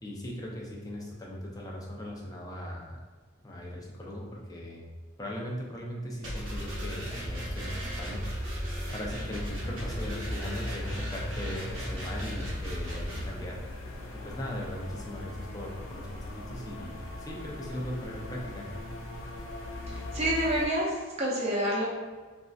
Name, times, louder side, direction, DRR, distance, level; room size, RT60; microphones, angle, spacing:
voice 1, 0.0-3.0 3.4-4.9 5.2-8.4 8.9-13.6 14.2-18.7, left 1 dB, 20° left, -2 dB, 0.4 m, -38 dB
sound 1, 6.2-13.3, equal, 70° right, 0.9 m, -36 dB
sound 2, 6.4-20.7, left 2 dB, 80° left, 0.5 m, -41 dB
voice 2, 19.9-21.8, right 1 dB, 30° right, -6 dB, 0.5 m, -28 dB
3.2 x 2.5 x 2.3 m, 1.4 s
head